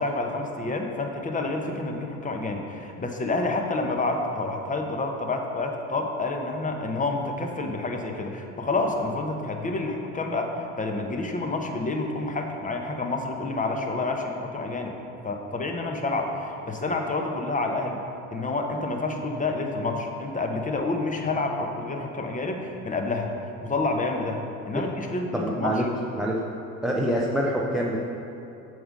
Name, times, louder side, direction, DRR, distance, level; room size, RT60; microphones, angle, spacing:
voice 1, 0.0-14.9 15.2-18.0 18.3-23.3 23.6-24.4 24.7-25.8, left 2 dB, 15° left, 3 dB, 1.0 m, -28 dB
voice 2, 25.3-25.9 26.2-26.4 26.8-28.1, equal, ahead, -3 dB, 0.7 m, -25 dB
7.9 x 7.0 x 5.2 m, 3.0 s
figure-of-eight pair, 65°, 45 cm